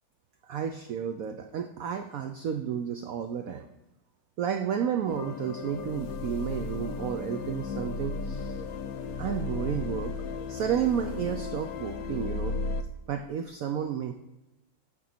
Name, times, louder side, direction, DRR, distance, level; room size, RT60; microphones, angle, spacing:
voice 1, 0.5-3.7 4.4-8.6 9.2-10.2 10.5-12.5 13.1-14.1, right 8 dB, 90° right, 7 dB, 0.7 m, -31 dB
sound 1, 5.1-12.8, left 4 dB, 70° left, 0.9 m, -35 dB
8.6 x 3.6 x 5.8 m, 0.97 s
omnidirectional pair, 2.1 m